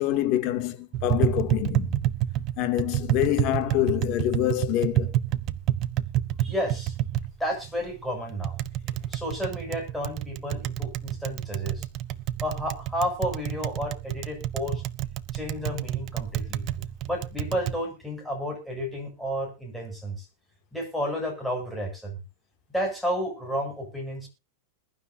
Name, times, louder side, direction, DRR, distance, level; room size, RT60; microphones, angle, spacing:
voice 1, 0.0-1.9 2.6-5.2, left 13 dB, 45° left, 2.6 m, -26 dB
Tap, 0.9-17.8, right 12 dB, 40° right, 1.1 m, -29 dB
voice 2, 6.4-6.9 7.4-8.6 9.1-11.9 12.4-14.8 15.3-20.3 20.7-22.2 22.7-24.3, equal, ahead, 8.0 m, -31 dB
21.5 x 12.0 x 2.8 m
supercardioid pair, 135°, 0 cm